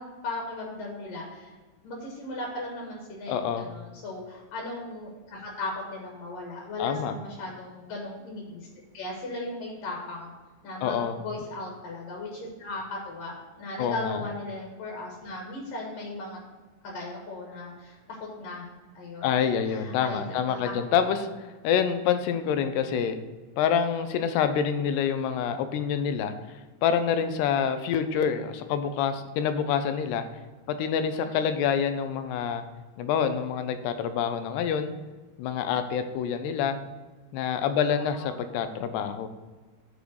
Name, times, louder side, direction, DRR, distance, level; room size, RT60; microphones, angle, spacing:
voice 1, 0.0-1.5 1.8-8.7 8.9-10.3 10.6-16.4 16.8-18.7 18.9-19.4 19.6-20.7 31.1-31.4 37.9-38.4, left 2 dB, 65° left, -1 dB, 2.7 m, -37 dB
voice 2, 3.3-3.7 6.8-7.1 10.8-11.2 13.8-14.2 19.2-23.2 23.6-30.2 30.8-32.6 33.0-34.9 35.4-36.8 37.3-39.3, left 7 dB, 85° left, 9 dB, 2.6 m, -27 dB
9.7 x 3.6 x 6.3 m, 1.3 s
omnidirectional pair, 4.8 m